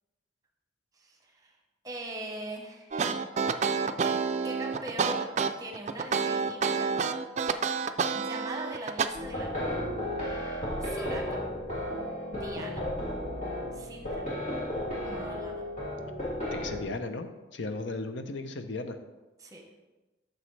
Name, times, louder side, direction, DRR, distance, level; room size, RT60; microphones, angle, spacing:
voice 1, 0.9-1.6 1.8-3.0 4.4-5.3 5.6-7.2 8.1-9.8 10.8-11.4 12.3-12.8 13.7-14.3 15.0-15.6 19.4-19.7, right 1 dB, 20° right, 2 dB, 1.1 m, -41 dB
sound 1, 2.9-9.1, right 5 dB, 40° right, 0.4 m, -28 dB
sound 2, 9.1-16.8, left 1 dB, 40° left, 3.1 m, -34 dB
voice 2, 16.5-19.0, left 3 dB, 80° left, 8 dB, 0.7 m, -36 dB
10.0 x 6.6 x 3.3 m, 1.1 s
head